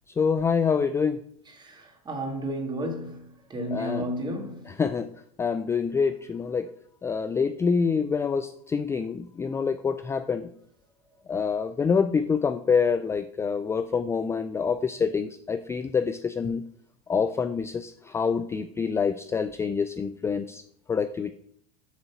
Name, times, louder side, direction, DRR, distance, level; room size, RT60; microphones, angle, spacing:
voice 1, 0.2-1.2 3.7-4.1 4.7-5.1 5.4-6.7 7.0-10.5 11.3-16.6 17.1-20.6 20.9-21.3, left 5 dB, 15° left, 0.3 m, -26 dB
voice 2, 1.6-4.7, equal, 20° right, 2.0 m, -33 dB
7.3 x 3.9 x 5.9 m
hypercardioid pair, 90°, 19 cm